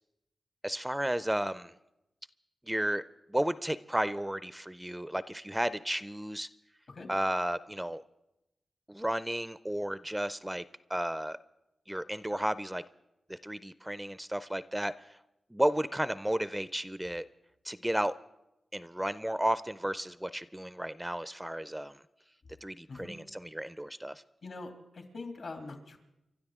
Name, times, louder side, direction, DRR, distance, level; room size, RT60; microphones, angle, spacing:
voice 1, 0.6-1.7 2.7-3.0 3.3-6.5 7.1-8.0 8.9-10.6 10.9-11.4 11.9-12.8 13.3-15.2 15.5-17.3 17.6-18.1 18.7-21.9 22.6-24.2, right 1 dB, 10° right, 15 dB, 0.4 m, -33 dB
voice 2, 24.4-26.0, left 3 dB, 70° left, 4 dB, 2.7 m, -43 dB
29.5 x 12.0 x 3.6 m, 0.92 s
cardioid pair, 70°, 0 cm